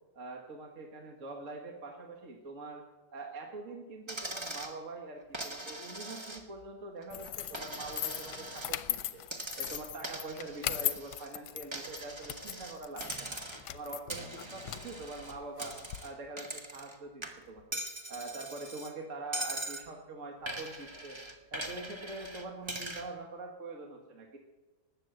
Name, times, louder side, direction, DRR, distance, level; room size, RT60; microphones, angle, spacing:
voice 1, 0.1-2.8 3.1-9.2 9.6-13.4 13.7-17.8 18.1-21.2 21.5-24.4, right 3 dB, 50° right, 1 dB, 1.8 m, -44 dB
Coin (dropping), 4.1-4.8 5.3-6.7 7.0-8.7 9.3-11.3 11.7-12.8 13.0-13.7 14.1-17.0 17.2-18.9 19.3-19.9 20.5-23.1, right 1 dB, 20° right, 1.1 m, -41 dB
sound 1, 7.1-16.0, left 11 dB, 80° left, 1.3 m, -39 dB
19.5 x 7.7 x 7.9 m, 1.2 s
omnidirectional pair, 1.8 m